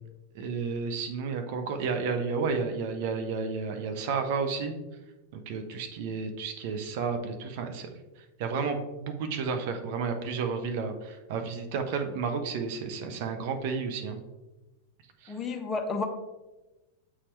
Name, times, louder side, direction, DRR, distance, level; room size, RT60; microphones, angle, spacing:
voice 1, 0.3-4.7 5.3-7.9 8.2-14.2 15.2-15.4, right 5 dB, 50° right, 6 dB, 0.8 m, -32 dB
voice 2, 15.3-16.1, left 4 dB, 20° left, 4 dB, 0.8 m, -31 dB
7.4 x 4.2 x 3.3 m, 1.1 s
figure-of-eight pair, 90°, 0 cm